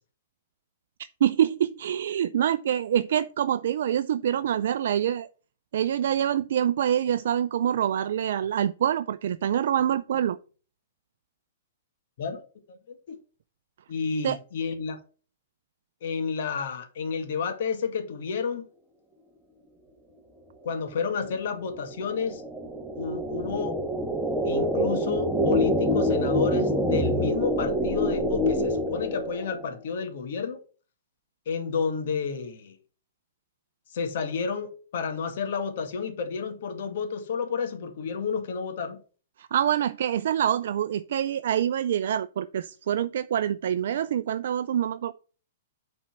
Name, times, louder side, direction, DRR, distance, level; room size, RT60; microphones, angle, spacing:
voice 1, 1.2-5.3 5.7-10.4 14.2-14.4 39.4-45.1, right 10 dB, 70° right, 0.4 m, -25 dB
voice 2, 12.7-13.2 13.9-15.0 16.0-18.7 20.6-22.4 22.9-23.8 24.5-30.6 31.5-32.8 33.9-39.0, left 5 dB, 65° left, 2.0 m, -31 dB
sound 1, 21.0-29.7, equal, 5° right, 1.4 m, -26 dB
7.4 x 4.3 x 5.9 m
hypercardioid pair, 130°, 0 cm